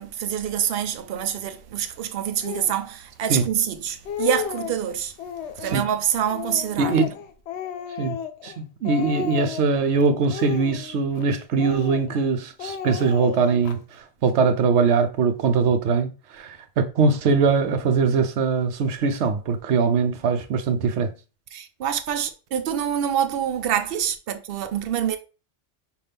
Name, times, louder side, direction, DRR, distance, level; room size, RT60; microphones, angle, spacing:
voice 1, 0.0-5.1 5.6-7.0 21.5-25.2, right 9 dB, 65° right, 0.8 m, -26 dB
Speech, 2.4-2.8 3.5-3.6 3.9-4.8 5.2-5.8 6.3-8.6 8.8-9.8 10.3-11.2 11.6-12.3 12.6-13.8, left 8 dB, 80° left, 0.8 m, -33 dB
voice 2, 6.8-7.1 8.0-8.2 8.4-13.8 14.2-16.1 16.3-21.1, right 5 dB, 85° right, 1.0 m, -21 dB
5.6 x 2.6 x 3.3 m
omnidirectional pair, 1.1 m